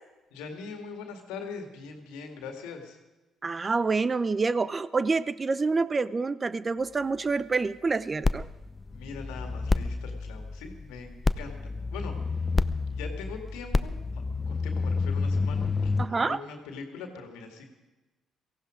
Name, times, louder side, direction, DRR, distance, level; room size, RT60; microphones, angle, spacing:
voice 1, 0.3-3.0 8.8-12.5 12.9-17.7, left 4 dB, 80° left, 4 dB, 2.1 m, -42 dB
voice 2, 3.4-8.5 16.0-16.4, right 4 dB, 35° right, 17 dB, 0.6 m, -27 dB
sound 1, 8.2-16.1, left 3 dB, 30° left, 0.6 m, -29 dB
18.0 x 15.0 x 5.1 m, 1.1 s
hypercardioid pair, 50°, 0 cm